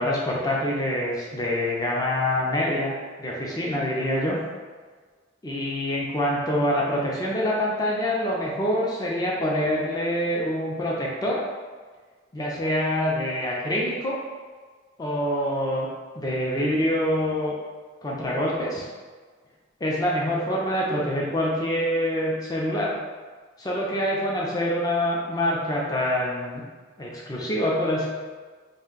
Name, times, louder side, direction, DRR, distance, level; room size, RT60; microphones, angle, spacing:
voice 1, 0.0-2.9 3.2-4.4 5.4-11.4 12.3-14.2 15.0-15.9 16.2-17.6 18.0-18.9 19.8-23.0 23.6-26.6 27.0-28.1, left 1 dB, 20° left, -4 dB, 0.4 m, -25 dB
2.5 x 2.1 x 3.7 m, 1.5 s
head